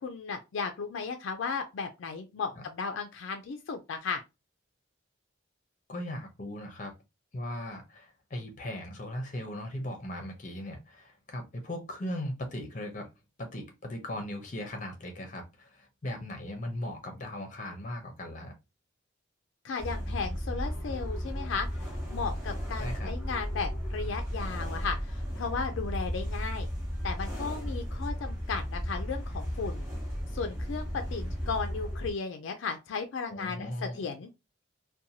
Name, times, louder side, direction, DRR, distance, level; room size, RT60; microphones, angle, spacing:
voice 1, 0.0-4.2 19.6-26.7 27.0-29.8 30.3-34.3, left 5 dB, 70° left, 0.3 m, -35 dB
voice 2, 5.9-6.9 7.3-13.1 13.4-18.5 22.8-23.1 33.3-34.1, left 1 dB, 40° left, 0.6 m, -38 dB
sound 1, 19.8-32.1, equal, 15° right, 0.9 m, -34 dB
2.7 x 2.2 x 2.7 m
head